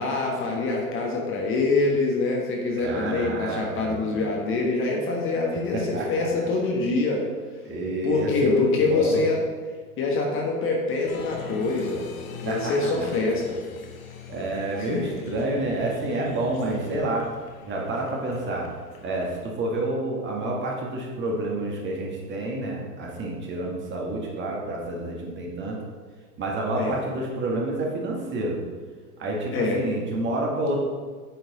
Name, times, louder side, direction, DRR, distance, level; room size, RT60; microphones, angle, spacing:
voice 1, 0.0-7.2 8.0-9.4 10.0-12.0 12.4-13.6 14.8-15.0 26.8-27.0 29.5-29.8, left 3 dB, 25° left, 0 dB, 1.3 m, -25 dB
voice 2, 2.8-4.2 5.7-6.3 7.6-9.2 12.4-12.7 14.3-17.3 17.6-18.7 19.0-25.8 26.4-28.6 29.2-30.8, right 2 dB, 25° right, -2 dB, 1.7 m, -29 dB
Applause, 11.0-19.4, left 6 dB, 60° left, 1.3 m, -42 dB
8.6 x 6.1 x 3.9 m, 1.5 s
figure-of-eight pair, 95°, 46 cm